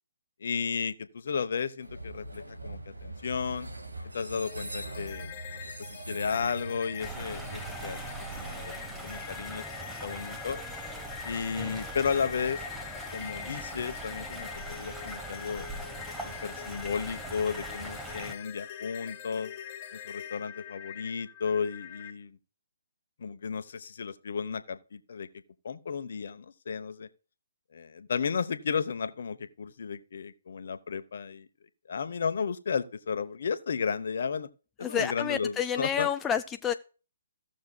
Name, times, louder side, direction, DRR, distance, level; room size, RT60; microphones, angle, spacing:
voice 1, 0.4-3.7 4.1-5.3 6.1-8.0 8.3-8.7 9.0-9.6 10.0-10.6 11.2-12.6 13.1-15.6 16.2-19.5 19.9-22.4 23.2-25.3 25.6-27.1 27.7-31.5 31.9-34.5 34.8-36.1, left 6 dB, 60° left, 0.9 m, -33 dB
Train, 1.8-9.8, right 2 dB, 85° right, 1.6 m, -42 dB
sound 1, 4.4-22.1, left 10 dB, 35° left, 1.0 m, -44 dB
sound 2, 7.0-18.3, right 2 dB, 5° right, 1.0 m, -41 dB
voice 2, 34.8-36.7, left 8 dB, 15° left, 0.4 m, -29 dB
16.5 x 6.4 x 2.3 m
figure-of-eight pair, 135°, 0 cm